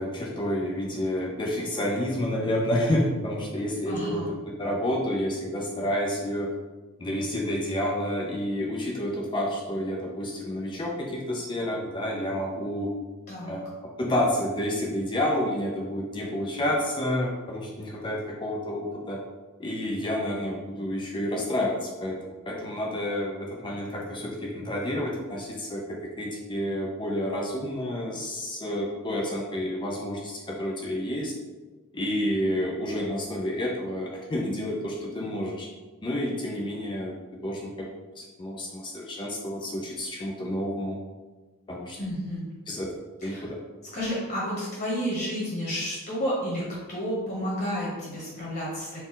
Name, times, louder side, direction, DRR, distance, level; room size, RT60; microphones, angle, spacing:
voice 1, 0.0-6.5 7.0-12.9 13.5-13.7 14.0-19.2 19.6-22.2 22.5-31.3 31.9-35.7 36.0-37.1 37.4-37.9 38.2-41.0 41.7-42.0 42.7-42.9 43.2-43.6, left 1 dB, 20° left, -1 dB, 0.4 m, -29 dB
voice 2, 3.8-4.3 13.3-13.6 42.0-42.4 43.3-43.4 43.9-49.1, equal, 45° left, -6 dB, 1.3 m, -31 dB
4.2 x 2.3 x 3.7 m, 1.2 s
head